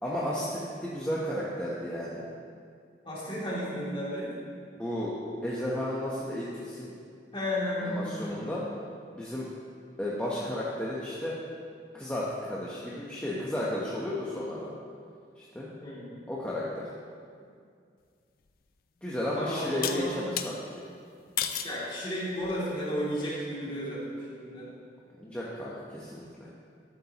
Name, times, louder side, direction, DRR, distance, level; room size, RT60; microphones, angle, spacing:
voice 1, 0.0-2.2 3.3-3.4 4.7-5.1 5.4-6.9 7.8-8.6 9.1-9.5 10.0-11.4 11.9-14.7 15.4-15.7 16.3-16.9 19.0-20.6 25.2-26.5, left 1 dB, 5° left, -7 dB, 0.8 m, -33 dB
voice 2, 3.0-4.3 7.3-8.5 15.8-16.1 19.4-20.1 21.6-24.7, equal, 30° left, -7 dB, 2.6 m, -33 dB
sound 1, 18.5-18.6 19.8-20.5 21.4-21.8 22.4-22.8, left 9 dB, 55° left, 0.5 m, -32 dB
12.0 x 8.1 x 2.9 m, 2.2 s
head